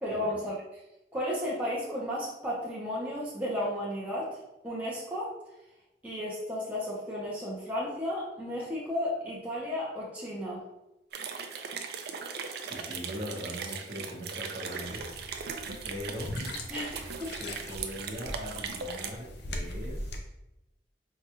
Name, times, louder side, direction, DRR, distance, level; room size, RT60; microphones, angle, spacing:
voice 1, 0.0-0.5 1.1-4.4 4.6-5.3 6.0-10.6 16.7-17.4, left 1 dB, 10° right, -7 dB, 0.6 m, -33 dB
sound 1, 11.1-19.1, right 5 dB, 60° right, 0.4 m, -39 dB
voice 2, 12.5-15.1 15.8-16.4 17.4-20.3, equal, 40° right, -3 dB, 0.9 m, -40 dB
sound 2, 14.8-20.2, left 1 dB, 65° left, 0.5 m, -40 dB
4.6 x 2.2 x 2.9 m, 0.91 s
head